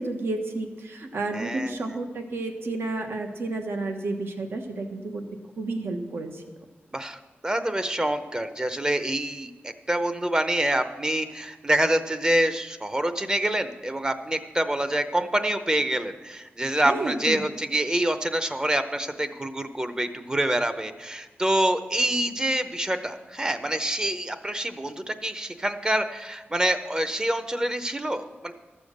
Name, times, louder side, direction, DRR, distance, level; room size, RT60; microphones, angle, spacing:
voice 1, 0.0-5.2 5.6-6.4 16.8-17.4, right 2 dB, 75° right, 4 dB, 1.3 m, -31 dB
voice 2, 1.3-1.8 6.9-28.5, right 1 dB, 20° right, 9 dB, 0.7 m, -26 dB
13.0 x 7.0 x 6.5 m, 1.3 s
wide cardioid pair, 105°, 4 cm